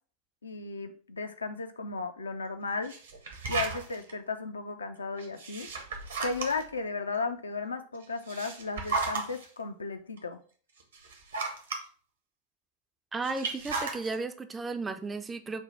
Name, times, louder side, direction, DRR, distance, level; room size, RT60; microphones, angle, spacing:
voice 1, 0.4-2.9 3.5-5.7 6.2-10.4, left 4 dB, 75° left, 0.4 m, -35 dB
sound 1, 2.8-4.1 5.2-6.8 8.0-9.4 10.2-10.3 10.8-11.8 13.2-14.1, right 4 dB, 65° right, 0.8 m, -34 dB
voice 2, 13.1-15.6, right 3 dB, 15° right, 0.4 m, -34 dB
5.3 x 2.1 x 4.2 m
figure-of-eight pair, 90°, 0 cm